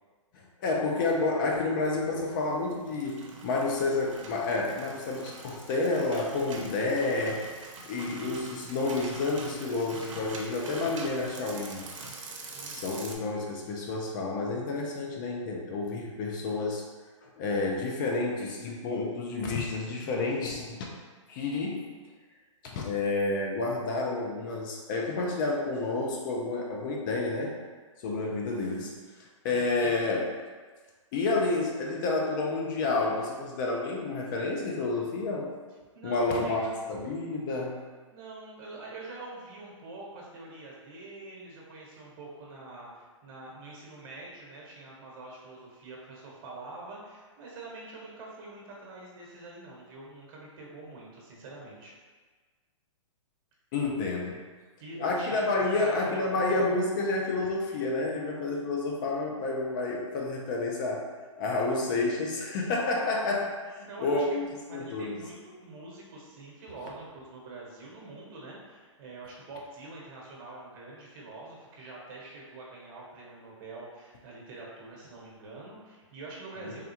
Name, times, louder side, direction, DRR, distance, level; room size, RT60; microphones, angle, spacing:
voice 1, 0.3-7.4 7.8-11.9 12.7-16.8 17.2-20.9 21.3-21.8 22.6-27.5 28.0-28.9 29.2-30.2 31.1-35.5 36.0-37.8 53.7-54.4 55.0-61.1 61.4-65.2, left 3 dB, 40° left, -1 dB, 0.5 m, -30 dB
sound 1, 2.7-13.2, right 3 dB, 70° right, 0.6 m, -44 dB
voice 2, 12.5-12.9 29.5-30.0 35.9-36.7 38.1-51.9 54.8-56.2 56.5-56.8 63.8-76.9, right 2 dB, 45° right, -3 dB, 1.0 m, -45 dB
3.4 x 2.3 x 2.8 m, 1.4 s
hypercardioid pair, 130°, 17 cm